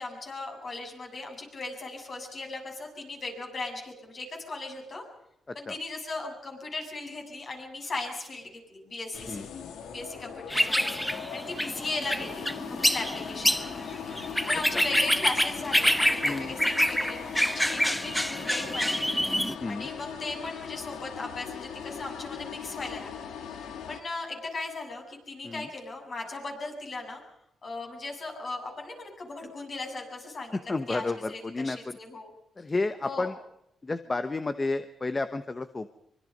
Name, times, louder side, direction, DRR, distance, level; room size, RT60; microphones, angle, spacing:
voice 1, 0.0-5.0 5.5-9.4 9.9-13.7 14.1-14.2 14.5-19.1 19.7-27.2 27.6-32.3 33.0-33.3, left 3 dB, 45° left, 2 dB, 7.5 m, -38 dB
sound 1, 9.1-24.0, left 7 dB, 90° left, 2.1 m, -40 dB
sound 2, 10.5-19.5, equal, 5° left, 1.0 m, -27 dB
voice 2, 16.2-16.5 19.6-19.9 25.4-25.7 30.7-32.0 32.6-33.3 33.8-35.9, left 3 dB, 25° left, 11 dB, 1.1 m, -31 dB
24.5 x 24.0 x 5.4 m, 0.79 s
cardioid pair, 105°, 0 cm